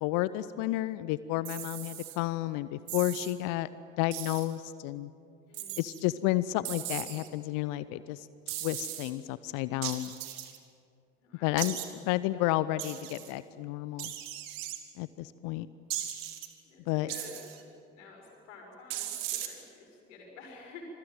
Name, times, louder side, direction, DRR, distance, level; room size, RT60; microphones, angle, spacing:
voice 1, 0.0-3.7 4.0-5.1 5.8-8.3 8.6-10.1 11.4-14.1 15.0-15.7 16.9-17.1, left 16 dB, 55° left, 16 dB, 0.8 m, -31 dB
sound 1, 1.4-2.2 2.9-3.3 4.1-4.5 5.5-6.0 6.6-7.3 8.5-9.1 9.8-10.6 11.6-11.9 12.8-13.3 14.0-14.8 15.9-16.5 17.1-17.6 18.9-19.5, right 12 dB, 60° right, 2.6 m, -38 dB
voice 2, 5.5-6.1 11.2-11.6 12.3-12.7 16.6-17.7 17.9-20.8, left 4 dB, 70° left, 1 dB, 6.2 m, -51 dB
27.0 x 22.0 x 9.3 m, 2.4 s
figure-of-eight pair, 55°, 38 cm